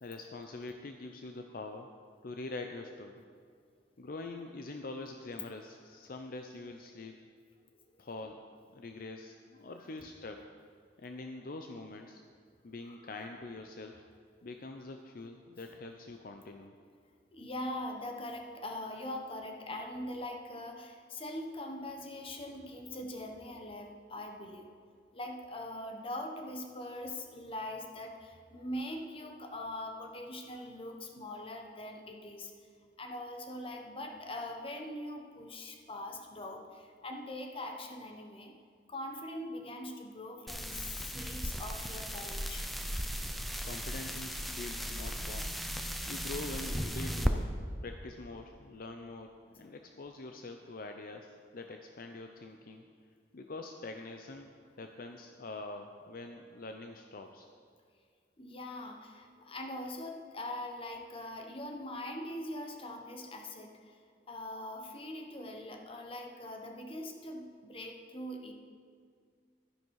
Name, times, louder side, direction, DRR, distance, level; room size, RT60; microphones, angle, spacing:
voice 1, 0.0-1.9 2.2-3.2 4.0-7.2 8.0-8.5 8.7-10.5 11.0-12.2 12.6-14.0 14.4-16.7 43.6-45.6 46.1-47.5 47.8-52.8 53.3-54.5 54.8-57.5, left 2 dB, 55° left, 5 dB, 0.6 m, -44 dB
voice 2, 12.9-13.3 17.3-24.7 25.1-32.5 33.0-38.5 38.9-42.7 58.4-64.0 64.3-68.5, left 1 dB, 30° left, 3 dB, 1.1 m, -42 dB
sound 1, 40.5-47.3, equal, ahead, 0.6 m, -36 dB
12.0 x 10.5 x 4.7 m, 2.1 s
head